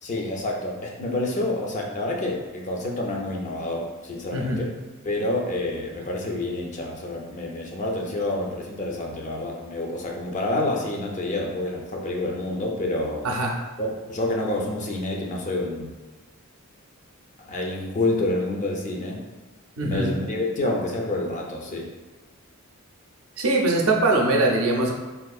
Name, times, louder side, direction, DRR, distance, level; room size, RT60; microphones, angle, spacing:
voice 1, 0.0-4.7 5.0-13.3 13.8-15.9 17.5-19.2 19.8-21.9, left 2 dB, 35° left, 0 dB, 0.4 m, -28 dB
voice 2, 19.8-20.1 23.4-24.9, right 2 dB, 75° right, 0 dB, 0.5 m, -22 dB
3.6 x 2.5 x 2.3 m, 1.2 s
head